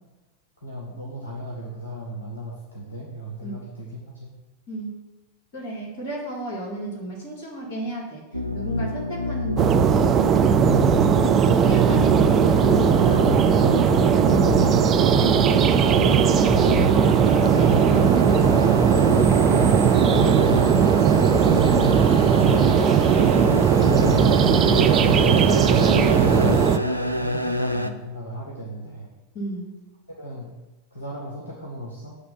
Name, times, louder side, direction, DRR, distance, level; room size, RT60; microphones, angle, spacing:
voice 1, 0.6-4.3 26.2-29.1 30.1-30.5 30.9-32.1, equal, 75° left, -2 dB, 1.0 m, -37 dB
voice 2, 5.5-8.2 8.5-10.8 11.1-13.4 16.9-17.8 18.3-18.9 25.8-26.3 29.3-29.8, right 1 dB, 50° left, -2 dB, 2.2 m, -33 dB
sound 1, 8.3-27.9, left 2 dB, 90° left, 0.4 m, -26 dB
sound 2, 9.6-26.8, right 8 dB, 30° right, 0.3 m, -18 dB
7.9 x 3.2 x 5.5 m, 1.2 s
figure-of-eight pair, 90°, 0 cm